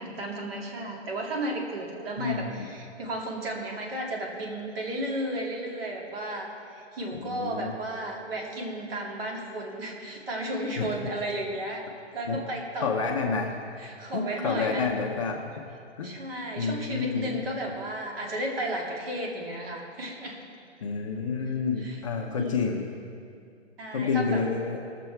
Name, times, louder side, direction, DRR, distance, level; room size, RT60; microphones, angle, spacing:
voice 1, 0.0-11.9 12.1-13.3 13.8-14.9 16.0-20.4 21.8-22.0 22.4-22.6 23.8-24.4, right 1 dB, 55° right, 0 dB, 2.3 m, -33 dB
voice 2, 2.2-2.7 7.1-7.7 10.8-10.9 12.3-12.4 12.8-13.6 14.1-15.6 16.0-16.1 16.6-17.4 20.8-22.9 23.9-24.8, left 5 dB, 30° left, 1 dB, 0.6 m, -29 dB
18.5 x 6.8 x 4.5 m, 2.4 s
hypercardioid pair, 155°, 35 cm